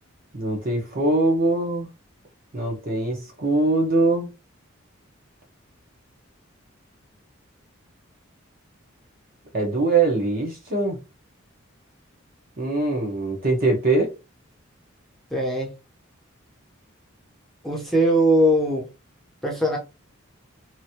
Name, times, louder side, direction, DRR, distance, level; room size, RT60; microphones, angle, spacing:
voice 1, 0.3-1.9 2.5-4.3 9.5-11.0 12.6-14.1, right 2 dB, 45° right, 1.1 m, -22 dB
voice 2, 15.3-15.7 17.6-18.9 19.4-19.8, right 1 dB, ahead, 0.8 m, -20 dB
3.1 x 2.6 x 2.8 m
head